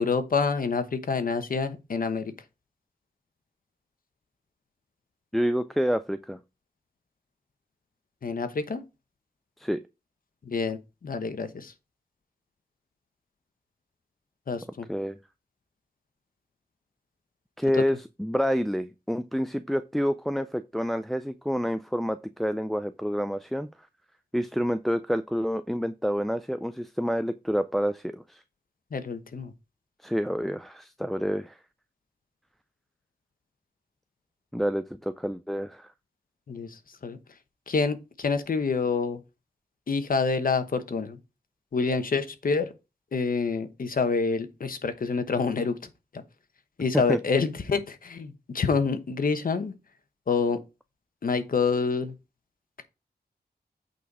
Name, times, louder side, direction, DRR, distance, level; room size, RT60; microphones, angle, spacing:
voice 1, 0.0-2.3 8.2-8.8 10.4-11.7 14.5-14.9 28.9-29.5 36.5-37.2 37.7-39.2 39.9-41.2 41.7-42.7 43.1-45.8 46.1-46.2 46.8-49.7 50.3-50.6 51.2-52.1, left 4 dB, 60° left, 1.1 m, -27 dB
voice 2, 5.3-6.4 9.6-9.8 14.9-15.2 17.6-23.7 24.3-28.4 30.0-31.6 34.5-35.9 47.1-47.2, equal, ahead, 0.4 m, -28 dB
8.3 x 4.1 x 4.8 m
wide cardioid pair, 95°, 17 cm